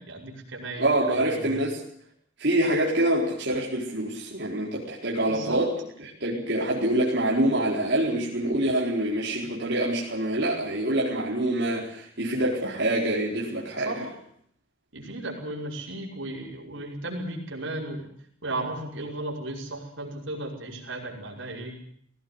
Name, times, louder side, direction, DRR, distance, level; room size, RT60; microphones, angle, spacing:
voice 1, 0.0-1.6 5.3-5.6 13.8-14.1 14.9-18.1 18.4-21.8, right 2 dB, 85° right, 0 dB, 5.7 m, -35 dB
voice 2, 0.8-1.8 2.4-5.7 6.0-14.1, right 1 dB, 60° right, -4 dB, 4.4 m, -26 dB
19.0 x 17.0 x 9.7 m, 0.66 s
head